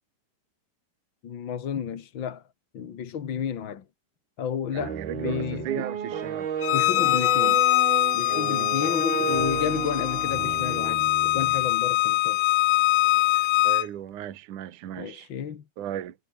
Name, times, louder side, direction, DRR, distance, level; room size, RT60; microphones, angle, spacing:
voice 1, 1.2-2.4 2.7-3.8 4.4-5.9 6.7-7.6 8.1-12.4 15.0-15.6, left 8 dB, 50° left, 1.5 m, -32 dB
voice 2, 4.7-6.5 13.3-15.3 15.8-16.2, right 10 dB, 60° right, 3.0 m, -35 dB
sound 1, 4.8-11.7, right 8 dB, 80° right, 4.9 m, -33 dB
Bowed string instrument, 6.6-13.9, left 17 dB, 75° left, 2.5 m, -23 dB
omnidirectional pair, 4.4 m